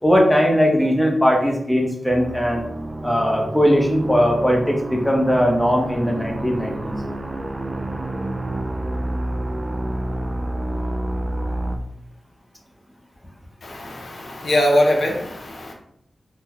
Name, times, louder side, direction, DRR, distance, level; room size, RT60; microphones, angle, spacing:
voice 1, 0.0-2.6 3.0-6.9, equal, 5° left, 0 dB, 0.7 m, -19 dB
sound 1, 2.1-11.8, right 1 dB, 35° right, 0.3 m, -28 dB
voice 2, 13.6-15.7, left 1 dB, 75° left, 0 dB, 0.6 m, -21 dB
3.7 x 2.2 x 2.9 m, 0.74 s
wide cardioid pair, 75°, 0 cm